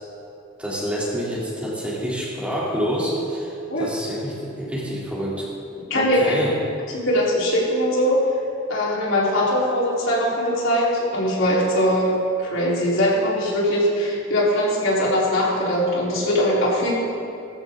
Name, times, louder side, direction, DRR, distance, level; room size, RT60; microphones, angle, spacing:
voice 1, 0.6-5.5 6.0-6.6, equal, 5° right, -7 dB, 3.4 m, -27 dB
voice 2, 5.9-6.5 6.9-8.2 8.7-12.1 12.4-16.9, equal, 80° left, -6 dB, 4.3 m, -21 dB
20.0 x 14.5 x 3.9 m, 2.7 s
head